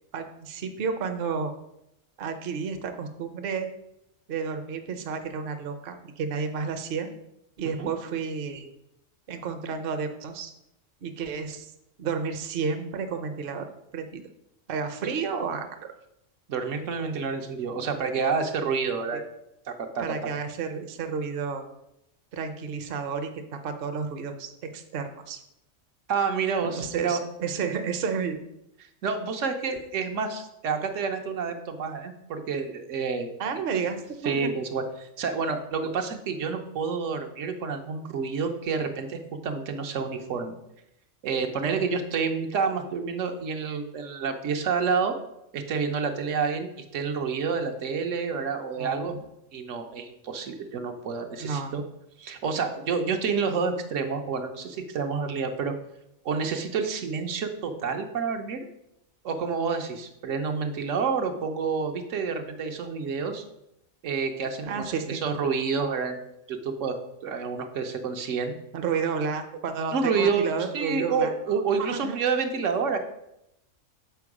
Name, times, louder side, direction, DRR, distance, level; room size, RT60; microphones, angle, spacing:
voice 1, 0.1-1.5 2.2-3.7 4.3-7.1 7.6-8.7 9.3-10.5 11.0-11.7 12.0-13.7 13.9-14.2 14.7-15.9 20.0-21.6 22.3-23.3 23.6-25.4 26.6-28.4 33.4-34.5 41.6-41.9 48.8-49.2 51.4-51.8 64.6-65.2 68.7-71.3 71.8-72.2, right 5 dB, 55° right, 6 dB, 0.8 m, -31 dB
voice 2, 16.5-19.3 19.7-20.0 26.1-27.2 29.0-33.6 34.2-40.5 41.2-45.2 45.5-49.2 49.5-51.8 52.2-55.7 56.2-58.7 59.2-63.4 64.0-66.2 66.5-67.0 67.2-68.5 69.9-73.0, right 5 dB, 75° right, 5 dB, 1.1 m, -29 dB
6.9 x 4.5 x 4.8 m, 0.82 s
omnidirectional pair, 1.3 m